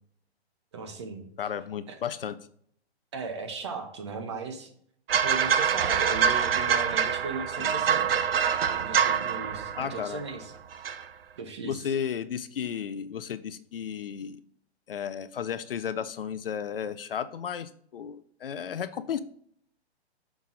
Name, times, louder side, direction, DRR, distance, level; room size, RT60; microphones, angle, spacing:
voice 1, 0.7-1.3 1.9-2.0 3.1-4.7 5.2-8.2 8.8-10.5 11.4-11.8, right 4 dB, 25° right, 6 dB, 0.7 m, -37 dB
voice 2, 1.4-2.4 7.6-7.8 9.8-10.2 11.6-14.4 14.9-19.2, left 8 dB, 55° left, 14 dB, 0.5 m, -33 dB
sound 1, 5.1-10.4 10.7-11.0, right 7 dB, 60° right, 0.6 m, -25 dB
6.0 x 5.7 x 3.7 m, 0.63 s
hypercardioid pair, 170°, 34 cm